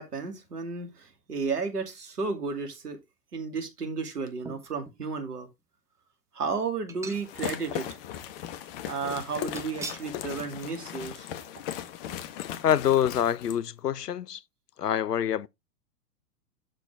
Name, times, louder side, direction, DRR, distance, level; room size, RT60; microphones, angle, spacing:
voice 1, 0.0-3.0 3.3-5.5 6.3-7.9 8.8-11.3, right 4 dB, 70° right, 2.5 m, -33 dB
sound 1, 4.4-5.0 5.6-5.7 6.9-7.6 8.0-8.1 9.6-10.2 10.6-10.7 11.0-11.1, right 4 dB, 5° right, 0.9 m, -43 dB
sound 2, 7.1-13.6, left 11 dB, 35° left, 1.1 m, -38 dB
voice 2, 12.6-14.4 14.8-15.5, left 10 dB, 75° left, 0.7 m, -25 dB
11.5 x 4.4 x 3.3 m
figure-of-eight pair, 110°, 48 cm